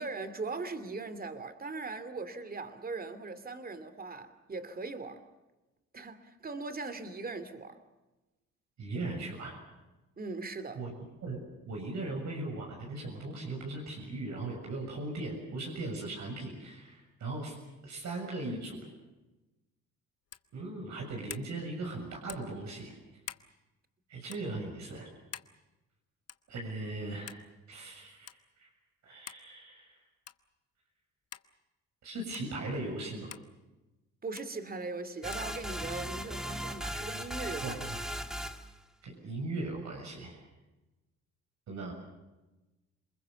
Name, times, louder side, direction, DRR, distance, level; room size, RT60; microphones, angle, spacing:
voice 1, 0.0-5.2 5.9-7.8 10.2-10.8 34.2-37.8, right 3 dB, 30° right, 2.6 m, -39 dB
voice 2, 8.8-9.6 10.8-10.9 11.2-17.6 17.8-18.9 20.5-23.0 24.1-25.1 26.5-28.3 28.6-28.7 29.0-30.0 32.0-33.3 37.6-38.0 39.0-40.4 41.7-41.9, right 2 dB, 65° right, 7.1 m, -38 dB
sound 1, 20.3-20.5 21.3-21.5 22.3-22.5 23.2-23.5 24.3-24.4 25.3-25.5 26.3-26.5 27.3-27.5 28.3-28.4 29.3-29.5 30.2-30.5 31.3-31.5 32.3-32.5 33.3-33.5 34.4-34.5 35.3-35.5, left 9 dB, 55° left, 1.2 m, -45 dB
sound 2, 35.2-38.7, equal, ahead, 2.0 m, -38 dB
28.5 x 21.0 x 7.0 m
cardioid pair, 90°, 30 cm